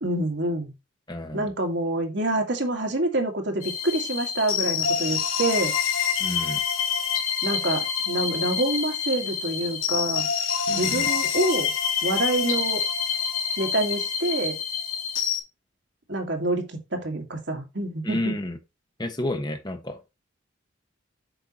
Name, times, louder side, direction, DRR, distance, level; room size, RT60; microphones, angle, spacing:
voice 1, 0.0-0.7 1.3-5.7 7.4-10.3 10.8-11.7 12.0-12.8 13.6-14.6 16.1-18.3, right 1 dB, 55° right, 2.0 m, -27 dB
voice 2, 1.1-1.5 6.2-6.6 10.7-11.1 18.0-18.6 19.0-20.1, left 1 dB, 20° left, 1.2 m, -30 dB
sound 1, 3.6-15.4, left 7 dB, 85° left, 2.7 m, -27 dB
8.0 x 5.6 x 3.0 m
head